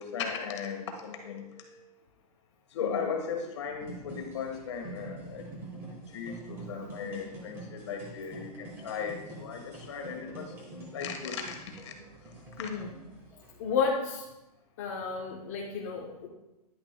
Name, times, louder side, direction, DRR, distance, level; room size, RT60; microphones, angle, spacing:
voice 1, 0.0-1.9 2.7-5.4 6.1-11.9 12.6-12.7, left 6 dB, 45° left, 3 dB, 1.4 m, -37 dB
sound 1, 3.8-13.9, right 2 dB, 10° right, 1.2 m, -46 dB
voice 2, 13.6-14.2 14.8-16.3, left 5 dB, 25° left, -3 dB, 0.7 m, -32 dB
10.5 x 9.7 x 2.2 m, 0.98 s
hypercardioid pair, 175°, 20 cm